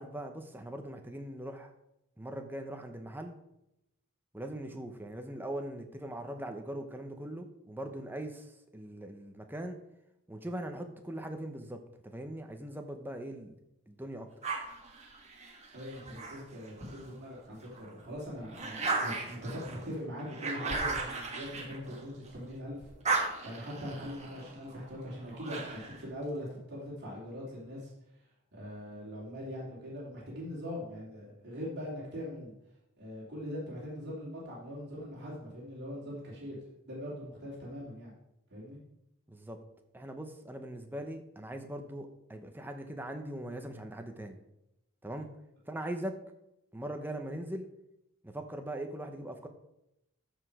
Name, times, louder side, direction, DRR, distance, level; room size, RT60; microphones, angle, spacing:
voice 1, 0.0-1.7 2.2-3.3 4.3-8.5 8.7-9.8 10.3-13.5 13.9-14.3 39.3-39.6 39.9-44.4 45.0-45.3 45.7-46.2 46.7-47.6 48.2-49.5, right 1 dB, 10° right, 5 dB, 0.9 m, -40 dB
sound 1, 14.4-17.1 17.6-22.4 22.7-26.0, right 3 dB, 30° right, 1.5 m, -37 dB
voice 2, 15.7-27.9 28.5-32.5 33.0-36.6 36.8-38.1 38.5-38.8, equal, 50° right, -5 dB, 3.0 m, -41 dB
13.5 x 5.1 x 4.9 m, 0.85 s
head